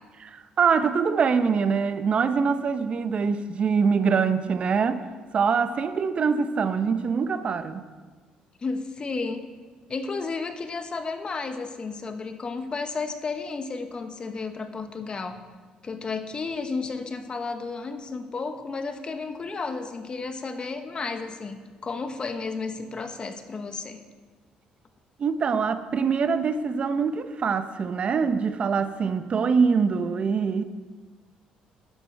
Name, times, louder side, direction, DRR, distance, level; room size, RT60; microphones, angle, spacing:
voice 1, 0.2-5.0 5.3-7.9 25.2-30.6, right 5 dB, 45° right, 11 dB, 0.7 m, -24 dB
voice 2, 8.6-9.4 9.9-15.4 15.8-24.0, left 4 dB, 35° left, 8 dB, 1.1 m, -32 dB
11.5 x 10.5 x 4.6 m, 1.4 s
cardioid pair, 95°, 3 cm